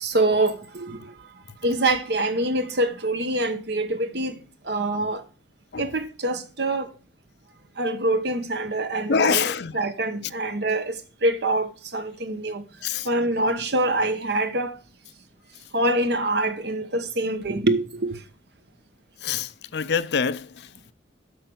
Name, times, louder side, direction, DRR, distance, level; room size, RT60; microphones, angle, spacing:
voice 1, 0.0-1.0 1.6-4.3 4.7-5.2 5.8-6.8 7.8-9.4 9.7-10.9 11.2-11.7 11.9-12.6 13.1-14.7 15.7-18.1, right 2 dB, 60° right, 1.1 m, -24 dB
voice 2, 9.1-9.9 10.2-10.3 12.8-13.1 15.6-15.7 19.2-20.9, left 6 dB, 60° left, 0.5 m, -26 dB
8.4 x 5.6 x 6.2 m
head